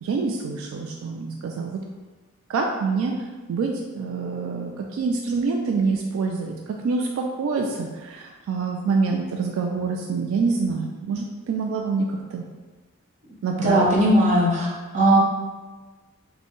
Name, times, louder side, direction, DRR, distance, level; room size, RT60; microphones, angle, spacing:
voice 1, 0.0-1.8 2.5-3.1 3.5-12.4 13.4-14.0, right 4 dB, 75° right, 1 dB, 0.3 m, -26 dB
voice 2, 13.6-14.7 14.9-15.2, right 1 dB, 35° right, -4 dB, 0.8 m, -18 dB
4.2 x 2.1 x 3.0 m, 1.3 s
head